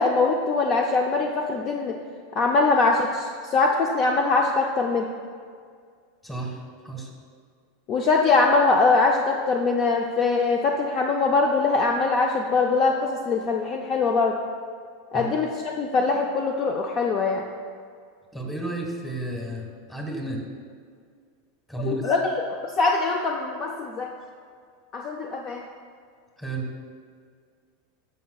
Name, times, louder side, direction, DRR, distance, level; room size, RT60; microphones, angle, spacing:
voice 1, 0.0-2.0 2.3-5.1 7.9-14.4 15.1-15.5 15.8-17.5 21.9-22.2 22.6-24.1 24.9-25.6, left 3 dB, 40° left, 2 dB, 0.5 m, -22 dB
voice 2, 6.2-7.1 15.1-15.3 18.3-20.4 21.7-22.1 26.4-26.7, right 2 dB, 10° left, 0 dB, 1.3 m, -32 dB
13.0 x 5.4 x 2.3 m, 2.1 s
supercardioid pair, 125°, 0 cm